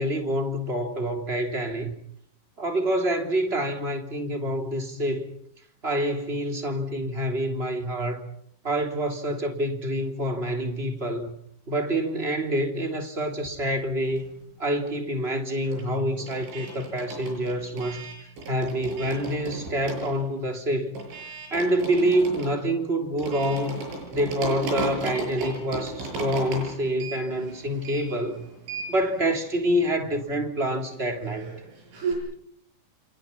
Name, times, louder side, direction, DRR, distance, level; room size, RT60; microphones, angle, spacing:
voice 1, 0.0-1.9 2.6-5.2 5.8-8.3 8.6-11.3 11.7-14.3 14.6-18.1 18.5-21.0 21.5-28.4 28.9-31.5, right 1 dB, 15° right, 2.4 m, -27 dB
sound 1, 13.3-14.6 14.8-32.1, right 3 dB, 70° right, 10.5 m, -36 dB
29.0 x 28.0 x 5.9 m
omnidirectional pair, 5.7 m